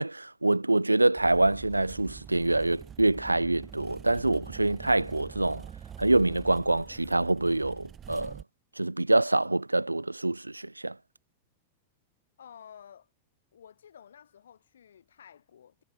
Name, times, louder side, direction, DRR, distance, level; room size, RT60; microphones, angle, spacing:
voice 1, 0.0-5.7 6.0-8.3 8.8-11.0, right 2 dB, 85° right, 0.4 m, -25 dB
sound 1, 1.2-8.4, right 8 dB, 25° right, 4.5 m, -45 dB
voice 2, 12.4-13.1 13.5-15.8, left 8 dB, 65° left, 5.9 m, -52 dB
figure-of-eight pair, 90°, 0 cm